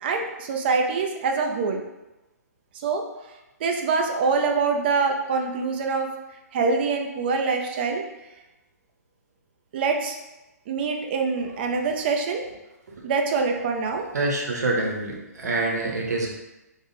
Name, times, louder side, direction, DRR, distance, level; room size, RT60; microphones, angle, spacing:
voice 1, 0.0-1.8 2.8-3.0 3.6-6.1 6.5-8.0 9.7-10.2 10.7-12.4 13.0-14.0, right 4 dB, 35° right, 3 dB, 0.5 m, -24 dB
voice 2, 14.1-16.3, right 2 dB, 80° right, 0 dB, 0.9 m, -26 dB
3.4 x 2.1 x 4.0 m, 1.0 s
hypercardioid pair, 160°, 9 cm